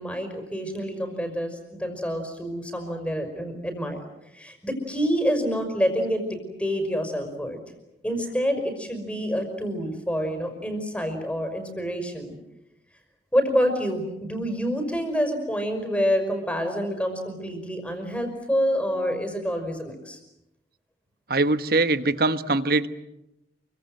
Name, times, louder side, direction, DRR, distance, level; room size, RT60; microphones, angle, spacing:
voice 1, 0.0-4.1 4.3-7.6 8.0-12.3 13.3-20.2, equal, 5° left, 6 dB, 5.5 m, -27 dB
voice 2, 21.3-22.9, right 2 dB, 60° right, 11 dB, 1.3 m, -22 dB
29.0 x 24.5 x 7.9 m, 0.89 s
head